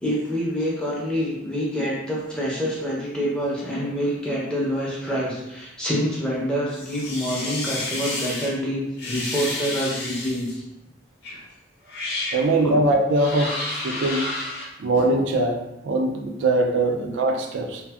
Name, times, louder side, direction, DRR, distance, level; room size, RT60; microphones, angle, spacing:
voice 1, 0.0-10.6 12.4-12.8 17.0-17.1, equal, 5° left, -6 dB, 0.6 m, -27 dB
sound 1, 6.7-8.5 9.0-10.5 11.2-11.4 11.8-12.4 13.1-14.6, left 2 dB, 60° left, 0.7 m, -31 dB
voice 2, 12.3-14.3 14.8-17.8, right 2 dB, 80° right, 3 dB, 0.3 m, -22 dB
2.6 x 2.4 x 2.3 m, 0.94 s
head